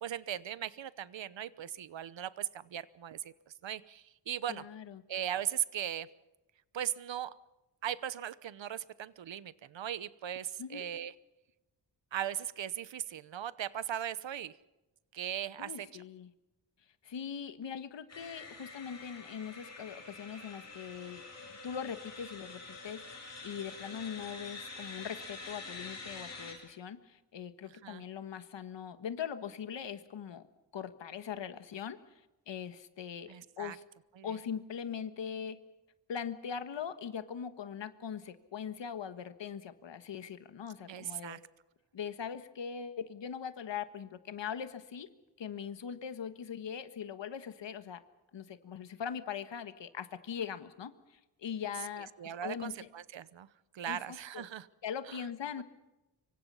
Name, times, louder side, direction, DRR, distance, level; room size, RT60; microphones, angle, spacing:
voice 1, 0.0-3.3 3.6-4.6 5.1-6.1 6.7-7.3 7.8-11.1 12.1-14.5 15.1-15.9 27.8-28.0 33.3-33.8 34.2-34.3 40.9-41.4 52.0-53.5 53.7-54.7 55.1-55.3 55.6-55.7, right 10 dB, 85° right, 17 dB, 1.0 m, -38 dB
voice 2, 4.5-5.0 10.6-10.8 15.6-16.3 17.0-21.2 21.6-30.4 30.7-32.0 32.5-33.8 34.2-35.6 36.1-41.4 41.9-45.1 45.4-48.0 48.3-52.9 53.8-54.5 54.8-55.6, left 7 dB, 80° left, 10 dB, 1.5 m, -41 dB
sound 1, 18.1-26.5, left 3 dB, 35° left, 7.6 m, -47 dB
26.0 x 24.0 x 5.6 m, 1.0 s
wide cardioid pair, 175°, 44 cm